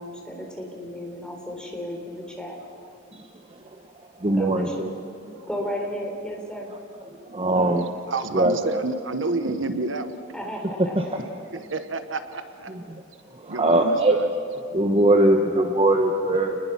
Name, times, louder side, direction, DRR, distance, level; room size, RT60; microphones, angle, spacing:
voice 1, 0.0-2.6 4.3-4.9 5.5-6.7 10.3-11.3, equal, 5° left, 0 dB, 3.8 m, -34 dB
voice 2, 4.2-4.9 7.3-7.9 8.3-8.8 10.9-11.0 12.7-13.0 13.4-14.2 14.7-16.6, right 1 dB, 30° right, 4 dB, 1.1 m, -21 dB
voice 3, 8.1-10.1 11.7-12.7 13.5-14.3, right 3 dB, 75° right, 9 dB, 1.2 m, -29 dB
29.5 x 20.5 x 6.0 m, 2.8 s
head